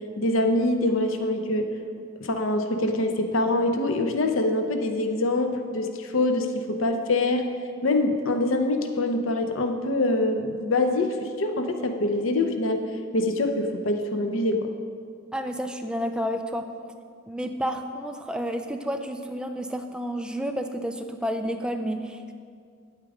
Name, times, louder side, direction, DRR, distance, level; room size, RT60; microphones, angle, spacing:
voice 1, 0.2-1.7 2.2-7.4 7.8-12.8 13.1-14.7, left 2 dB, 80° left, 6 dB, 0.7 m, -24 dB
voice 2, 15.3-16.7 17.3-22.3, equal, 5° right, 6 dB, 0.4 m, -30 dB
9.1 x 8.2 x 4.9 m, 2.2 s
head